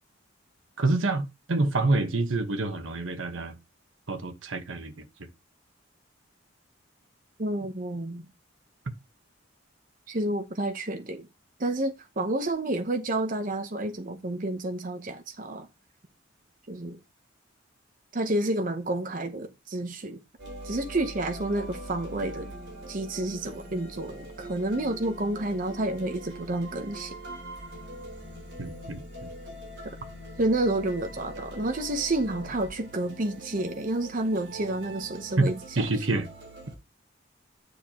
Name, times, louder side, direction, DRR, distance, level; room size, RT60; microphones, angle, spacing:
voice 1, 0.8-3.6 4.1-5.1 28.6-29.3 35.4-35.5 35.7-36.3, right 2 dB, 85° right, 1.2 m, -27 dB
voice 2, 7.4-8.3 10.1-11.3 11.6-15.7 16.7-17.0 18.1-20.2 20.6-22.5 22.9-27.1 30.4-36.1, right 1 dB, 45° right, 0.8 m, -30 dB
sound 1, 20.4-36.7, right 1 dB, 60° right, 4.9 m, -42 dB
9.8 x 6.5 x 2.9 m
head